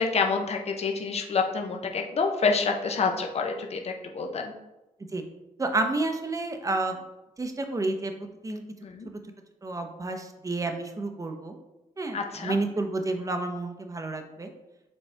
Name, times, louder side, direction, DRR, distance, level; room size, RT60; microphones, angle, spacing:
voice 1, 0.0-4.5 8.8-9.1 12.1-12.6, left 4 dB, 45° left, 3 dB, 0.8 m, -27 dB
voice 2, 5.6-7.0 7.4-8.6 9.6-11.5 12.0-14.5, right 2 dB, 20° right, 5 dB, 0.8 m, -30 dB
7.2 x 4.1 x 3.4 m, 0.97 s
cardioid pair, 100°, 15 cm